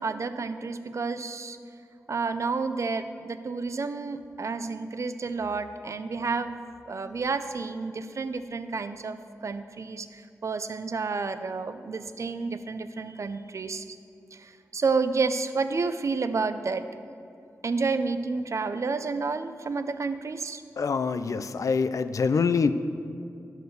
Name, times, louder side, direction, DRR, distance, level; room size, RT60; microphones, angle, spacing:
voice 1, 0.0-1.6 2.1-6.6 6.9-14.0 14.3-16.9 17.6-20.6, right 4 dB, 55° right, 11 dB, 0.4 m, -30 dB
voice 2, 20.8-22.7, left 5 dB, 70° left, 12 dB, 0.4 m, -25 dB
10.5 x 4.6 x 6.5 m, 2.5 s
cardioid pair, 65°, 6 cm